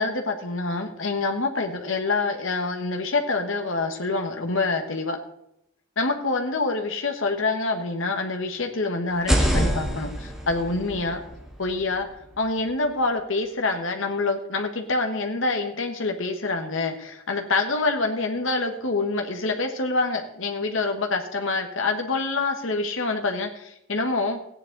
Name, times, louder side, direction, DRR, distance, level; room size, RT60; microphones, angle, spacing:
voice 1, 0.0-5.2 6.0-11.2 11.6-12.1 12.4-24.4, left 3 dB, 65° left, 4 dB, 1.4 m, -26 dB
sound 1, 9.1-13.0, equal, ahead, 1.8 m, -27 dB
15.0 x 9.7 x 4.0 m, 0.79 s
head